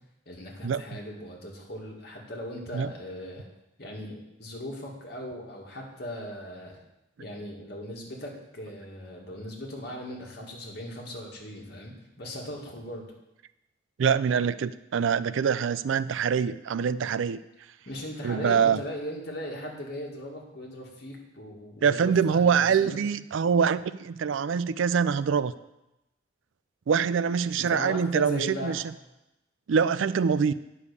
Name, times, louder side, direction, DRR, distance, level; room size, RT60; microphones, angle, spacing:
voice 1, 0.3-3.5 3.8-6.8 7.2-13.0 17.9-23.0 27.6-28.8, equal, 55° left, -1 dB, 2.0 m, -38 dB
voice 2, 14.0-17.4 18.2-18.8 21.8-25.5 26.9-28.8 29.7-30.5, right 6 dB, 75° right, 16 dB, 0.4 m, -24 dB
9.5 x 5.4 x 6.8 m, 0.93 s
head